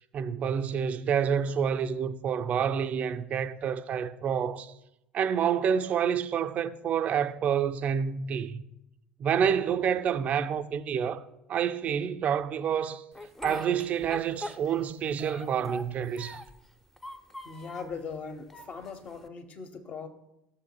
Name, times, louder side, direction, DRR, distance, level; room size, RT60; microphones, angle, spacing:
voice 1, 0.1-4.7 5.1-8.6 9.2-11.2 11.5-13.0 13.4-16.4, right 8 dB, 40° right, 0.4 m, -28 dB
Speech, 13.1-14.9 15.2-16.6 17.0-17.9 18.5-19.3, equal, 10° left, 0.6 m, -41 dB
voice 2, 17.4-20.1, left 5 dB, 40° left, 1.0 m, -40 dB
13.0 x 7.0 x 2.2 m
figure-of-eight pair, 65°, 4 cm